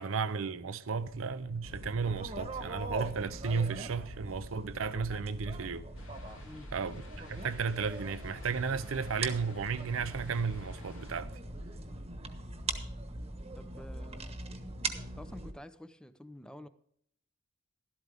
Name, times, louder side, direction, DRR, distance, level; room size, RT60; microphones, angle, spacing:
voice 1, 0.0-5.8 6.7-11.4, right 5 dB, 75° right, 0.6 m, -34 dB
sound 1, 1.0-12.7, left 4 dB, 55° left, 0.5 m, -54 dB
sound 2, 1.6-15.5, right 2 dB, 30° right, 1.2 m, -41 dB
sound 3, 5.9-11.2, left 3 dB, 80° left, 3.0 m, -55 dB
voice 2, 13.5-14.4 15.2-16.7, left 1 dB, 5° left, 0.6 m, -49 dB
12.5 x 12.0 x 3.5 m
head